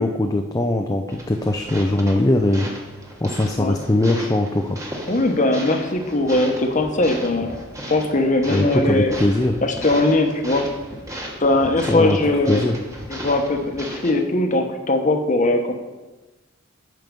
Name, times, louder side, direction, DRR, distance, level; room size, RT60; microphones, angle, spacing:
voice 1, 0.0-2.7 3.2-4.8 8.5-9.6 11.9-12.2 12.5-12.8, left 1 dB, 15° left, 4 dB, 0.4 m, -20 dB
sound 1, 1.1-14.1, right 1 dB, 15° right, 1.2 m, -36 dB
voice 2, 5.1-9.1 9.6-10.7 11.4-12.6 13.1-15.7, left 2 dB, 40° left, 5 dB, 1.0 m, -20 dB
9.3 x 5.8 x 5.2 m, 1.2 s
head